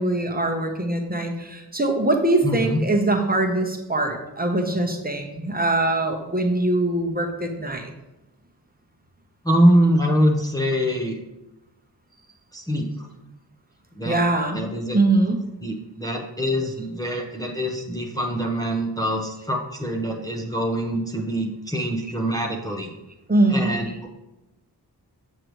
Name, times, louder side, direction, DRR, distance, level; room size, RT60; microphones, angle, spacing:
voice 1, 0.0-7.9 14.0-14.6 14.9-15.4 23.3-23.8, right 2 dB, 20° right, 2 dB, 0.9 m, -22 dB
voice 2, 2.4-2.8 9.4-11.2 12.5-13.1 13.9-14.2 14.5-15.0 15.6-22.9 23.5-24.1, equal, 10° left, 0 dB, 0.8 m, -24 dB
7.7 x 6.5 x 3.1 m, 1.0 s
wide cardioid pair, 85°, 41 cm